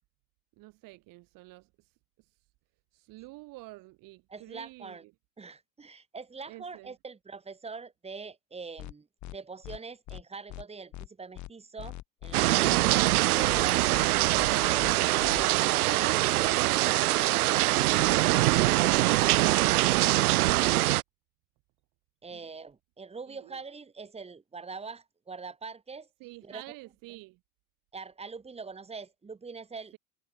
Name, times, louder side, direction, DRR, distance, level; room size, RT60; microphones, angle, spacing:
voice 1, 0.6-2.5 2.9-5.1 6.5-6.9 19.3-20.7 22.3-22.5 23.3-23.6 26.2-27.4, right 21 dB, 45° right, 4.4 m, -48 dB
voice 2, 4.3-5.0 5.4-12.0 12.2-12.8 13.1-18.0 22.2-26.1 26.4-26.6 27.9-30.0, right 4 dB, 15° right, 3.8 m, -43 dB
sound 1, 8.8-8.9 9.2-9.4 9.6-9.8 10.1-10.2 10.5-10.6 10.9-11.1 11.3-11.5 11.8-12.4 12.6-12.8 13.1-13.2 13.5-13.6 13.9-14.1 14.3-14.5 14.8-14.9 15.2-15.4, left 16 dB, 40° left, 4.1 m, -41 dB
sound 2, 12.3-21.0, right 18 dB, 80° right, 0.9 m, -23 dB
supercardioid pair, 125°, 44 cm